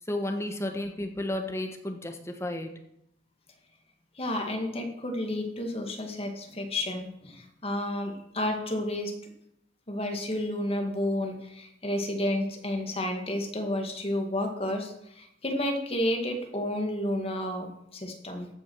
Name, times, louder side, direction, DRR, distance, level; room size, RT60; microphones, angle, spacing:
voice 1, 0.1-2.7, left 1 dB, 15° left, 5 dB, 1.3 m, -32 dB
voice 2, 4.2-9.1 9.9-18.5, left 1 dB, 35° left, 3 dB, 2.0 m, -31 dB
14.5 x 6.4 x 6.2 m, 0.78 s
head